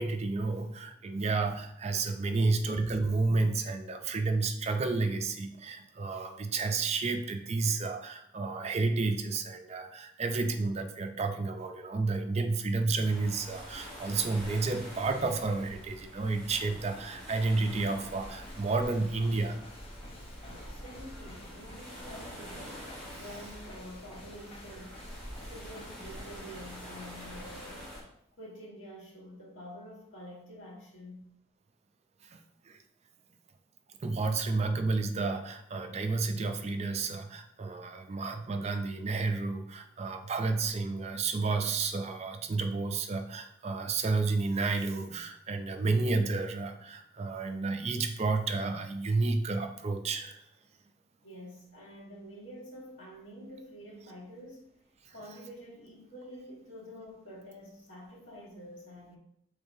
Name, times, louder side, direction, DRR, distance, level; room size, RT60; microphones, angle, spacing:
voice 1, 0.0-19.6 32.3-32.4 32.7-32.8 34.0-50.4 55.1-55.2, right 3 dB, 35° right, 6 dB, 0.4 m, -31 dB
sound 1, 13.0-28.0, equal, 5° left, 1.6 m, -46 dB
sound 2, 18.2-27.7, left 1 dB, 30° left, 0.6 m, -52 dB
voice 2, 20.4-22.8 23.2-25.1 25.4-28.0 28.4-31.2 51.2-54.7 55.1-59.2, equal, 90° left, -3 dB, 1.5 m, -48 dB
5.1 x 3.8 x 2.7 m, 0.74 s
head